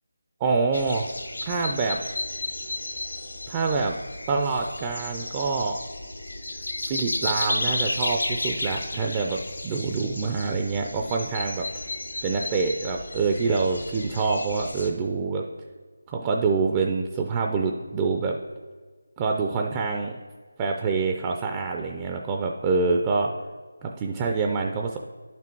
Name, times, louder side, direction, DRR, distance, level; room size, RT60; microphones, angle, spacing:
voice 1, 0.4-1.0 1.4-2.0 3.5-4.0 4.3-5.8 6.8-9.4 9.6-11.7 12.2-15.4 16.1-18.4 19.2-20.2 20.6-23.3 23.8-25.1, right 4 dB, 15° right, 2 dB, 0.4 m, -26 dB
sound 1, 0.7-14.9, left 2 dB, 85° left, 1.9 m, -33 dB
10.5 x 6.0 x 4.5 m, 1.4 s
figure-of-eight pair, 170°, 0 cm